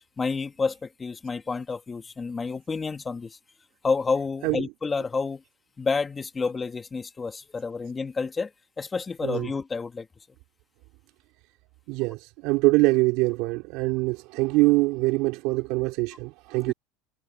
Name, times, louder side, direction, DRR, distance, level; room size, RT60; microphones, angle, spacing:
voice 1, 0.2-3.4 3.8-5.4 5.8-8.5 8.8-10.1 16.7-16.8, left 4 dB, 15° left, 2.0 m, -29 dB
voice 2, 11.9-16.7, right 23 dB, 60° right, 4.4 m, -24 dB
supercardioid pair, 130°, 0 cm